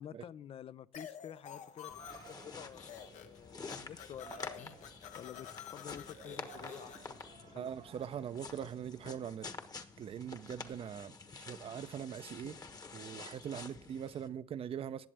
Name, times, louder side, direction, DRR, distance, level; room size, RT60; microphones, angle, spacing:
voice 1, 0.0-4.7 5.2-7.7, left 10 dB, 50° left, 0.4 m, -50 dB
sound 1, 0.9-2.4 2.7-3.4 3.6-7.2, left 8 dB, 80° left, 1.2 m, -50 dB
Yell, 1.4-9.2, right 9 dB, 75° right, 1.0 m, -59 dB
sound 2, 1.9-14.3, left 4 dB, 30° left, 1.2 m, -49 dB
voice 2, 7.5-9.5 10.0-12.6 12.9-15.1, right 9 dB, 50° right, 0.6 m, -42 dB
19.5 x 7.4 x 3.4 m
cardioid pair, 100°, 12 cm